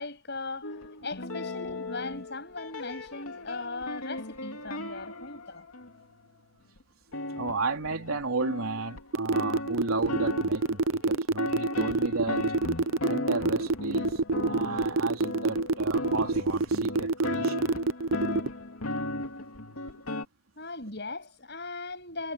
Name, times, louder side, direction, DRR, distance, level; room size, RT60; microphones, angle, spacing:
voice 1, 0.0-5.7 20.6-22.3, left 3 dB, 55° left, 7.5 m, -38 dB
sound 1, 0.6-6.1 6.8-6.9 7.1-20.3, left 2 dB, 85° left, 2.7 m, -36 dB
voice 2, 7.3-12.4 13.0-17.8 18.2-18.3, right 3 dB, 85° right, 3.4 m, -34 dB
sound 2, 9.1-18.5, right 3 dB, 70° right, 0.7 m, -26 dB
head